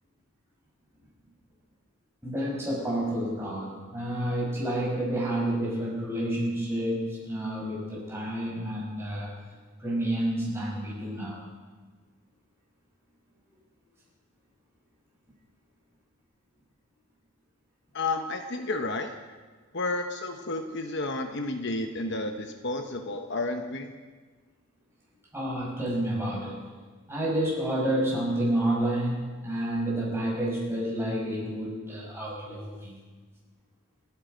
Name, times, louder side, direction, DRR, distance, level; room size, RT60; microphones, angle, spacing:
voice 1, 2.2-9.3 9.8-11.4 25.3-26.6 27.1-33.0, right 1 dB, 10° right, -4 dB, 5.5 m, -29 dB
voice 2, 17.9-19.1 19.7-23.9, left 2 dB, 55° left, 5 dB, 1.0 m, -31 dB
28.0 x 9.5 x 5.2 m, 1.4 s
head